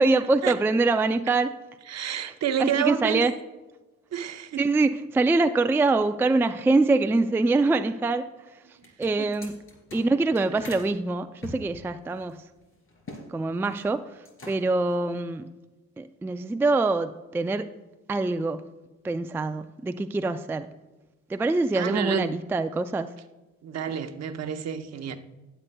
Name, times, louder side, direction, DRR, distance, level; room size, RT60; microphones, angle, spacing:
voice 1, 0.0-1.5 1.9-2.2 2.6-3.3 4.6-8.3 9.0-9.6 9.9-12.4 13.3-15.5 16.0-17.7 18.1-18.6 19.0-20.7 21.3-23.1, right 3 dB, 10° right, 0.3 m, -24 dB
voice 2, 1.9-3.2 4.1-4.7 9.2-9.3 21.7-22.3 23.6-25.2, right 8 dB, 60° right, 0.9 m, -29 dB
sound 1, 8.7-10.9 11.4-13.3 13.5-13.9 14.2-14.8, left 2 dB, 45° left, 2.9 m, -44 dB
18.5 x 7.9 x 2.2 m
cardioid pair, 90°, 30 cm